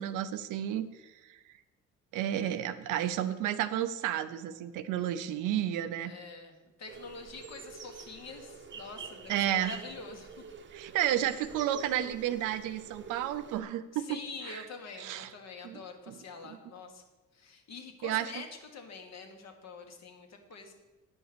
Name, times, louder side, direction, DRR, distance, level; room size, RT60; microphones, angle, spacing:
voice 1, 0.0-1.4 2.1-6.1 9.3-9.8 10.7-14.2 14.4-14.6 15.0-15.3 15.6-15.8 16.1-16.2 16.4-16.6 18.0-18.3, right 11 dB, 90° right, 11 dB, 0.7 m, -32 dB
voice 2, 6.0-10.4 13.9-17.0 17.3-18.5 18.7-20.7, left 4 dB, 60° left, 4 dB, 1.7 m, -46 dB
sound 1, 6.9-13.6, right 5 dB, 40° right, 0.8 m, -47 dB
9.7 x 5.3 x 6.9 m, 1.2 s
cardioid pair, 90°, 30 cm